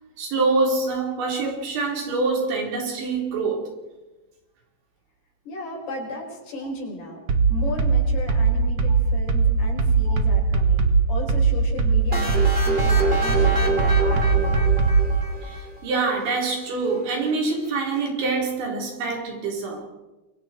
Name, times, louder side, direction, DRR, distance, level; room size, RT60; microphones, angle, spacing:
voice 1, 0.2-3.8 10.1-10.2 15.4-19.9, right 3 dB, 85° right, 6.7 m, -25 dB
voice 2, 5.5-7.2 7.5-14.7, left 1 dB, 65° left, 6.9 m, -35 dB
sound 1, 7.3-15.1, right 5 dB, 55° right, 1.6 m, -19 dB
sound 2, 12.1-15.9, right 2 dB, 15° right, 3.6 m, -26 dB
28.0 x 23.0 x 4.6 m
omnidirectional pair, 5.0 m